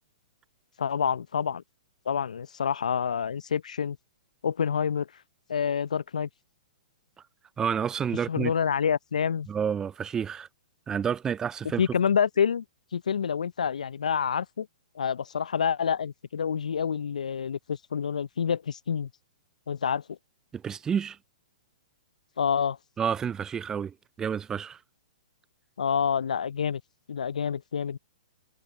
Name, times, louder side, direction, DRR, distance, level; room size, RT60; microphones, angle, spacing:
voice 1, 0.8-1.6 2.1-4.0 4.4-5.1 5.5-6.3 8.3-9.5 11.8-12.6 12.9-14.7 15.0-19.1 19.7-20.2 22.4-22.8 25.8-26.8 27.1-28.0, left 7 dB, 75° left, 0.5 m, -27 dB
voice 2, 7.6-8.5 9.5-10.5 10.9-11.8 20.5-21.2 23.0-24.8, right 7 dB, 15° right, 0.4 m, -29 dB
figure-of-eight pair, 115°, 4 cm